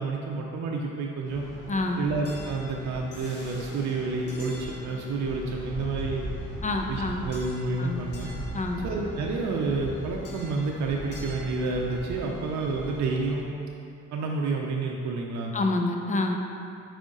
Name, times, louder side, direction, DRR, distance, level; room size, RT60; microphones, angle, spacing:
voice 1, 0.0-1.5 2.0-6.3 6.9-8.3 8.8-13.5 14.1-15.5, right 3 dB, 65° right, -1 dB, 0.6 m, -29 dB
sound 1, 1.3-13.3, equal, 50° left, 1.3 m, -39 dB
voice 2, 1.7-2.0 6.6-7.3 7.8-8.0 8.5-8.9 15.5-16.4, left 2 dB, 25° left, 3 dB, 0.5 m, -27 dB
5.1 x 4.9 x 3.8 m, 2.5 s
cardioid pair, 90°, 30 cm